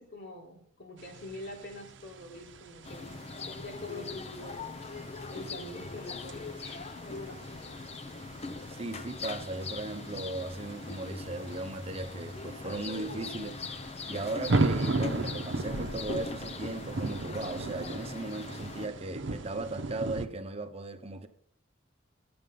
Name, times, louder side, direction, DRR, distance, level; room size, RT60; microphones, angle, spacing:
voice 1, 0.0-4.8 5.3-7.9, left 1 dB, 65° left, 3.6 m, -45 dB
sound 1, 1.0-20.3, right 2 dB, 75° right, 0.8 m, -37 dB
sound 2, 2.8-18.9, left 3 dB, 35° left, 0.7 m, -41 dB
voice 2, 8.8-13.6 14.1-21.3, right 2 dB, 30° right, 0.9 m, -37 dB
11.0 x 8.7 x 5.4 m
head